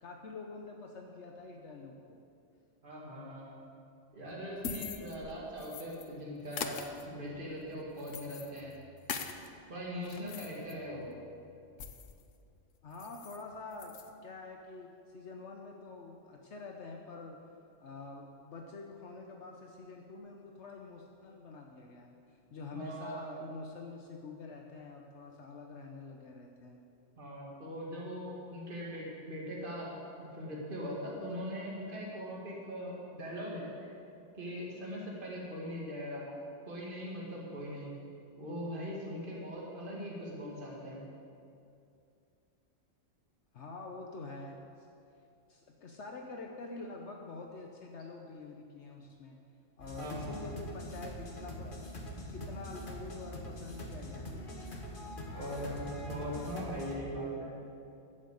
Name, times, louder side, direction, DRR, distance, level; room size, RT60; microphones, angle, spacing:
voice 1, 0.0-2.2 10.4-10.5 12.8-13.9 14.2-17.4 17.8-26.8 43.5-44.9 45.5-49.4 49.8-51.8 52.3-54.4, left 3 dB, 70° left, 1 dB, 1.2 m, -46 dB
voice 2, 2.8-3.6 4.1-8.7 9.7-11.0 22.7-23.3 27.2-29.9 30.2-33.9 34.3-36.2 36.7-37.9 38.4-41.0 50.0-50.4 55.3-57.5, equal, 45° right, -5 dB, 2.5 m, -40 dB
sound 1, 4.3-6.1 6.5-9.5 9.9-12.2 12.6-12.7 12.9-13.4 13.7-14.1, left 6 dB, 90° left, 1.2 m, -43 dB
sound 2, 49.8-56.9, equal, 45° left, 1.6 m, -43 dB
12.5 x 7.6 x 8.1 m, 2.5 s
omnidirectional pair, 1.3 m